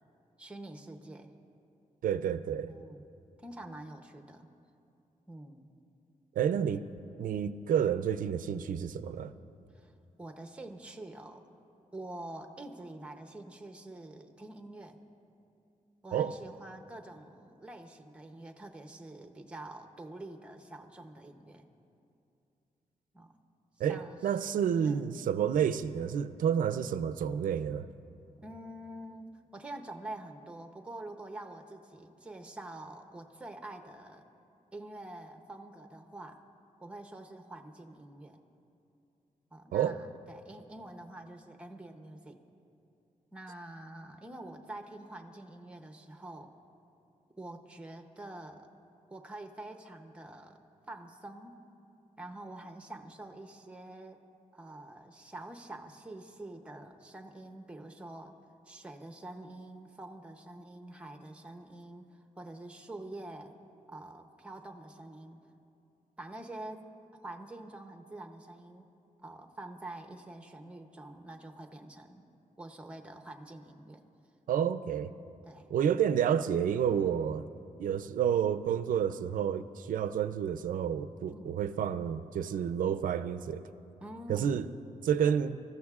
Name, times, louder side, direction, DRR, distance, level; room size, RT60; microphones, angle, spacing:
voice 1, 0.4-1.3 2.7-3.1 3.4-4.5 5.3-5.7 9.7-9.9 10.2-11.4 11.9-15.0 16.0-21.7 23.1-23.3 23.9-24.2 24.5-25.1 28.4-34.2 34.7-36.4 36.8-38.4 39.5-42.4 43.3-46.5 47.4-48.7 49.1-50.6 50.9-51.6 52.2-54.2 54.5-58.3 58.7-63.5 63.9-65.4 66.2-66.9 67.2-68.9 69.2-72.2 72.6-74.0 75.5-75.7 81.3-81.6 84.0-84.6, right 1 dB, 10° right, 0.7 m, -46 dB
voice 2, 2.0-2.7 6.4-6.8 7.2-9.3 16.1-16.3 23.8-27.9 39.7-40.0 74.5-75.1 75.7-77.4 77.8-83.6 84.3-84.6 85.0-85.6, right 8 dB, 90° right, 0.4 m, -30 dB
26.0 x 14.0 x 2.4 m
wide cardioid pair, 175°, 14 cm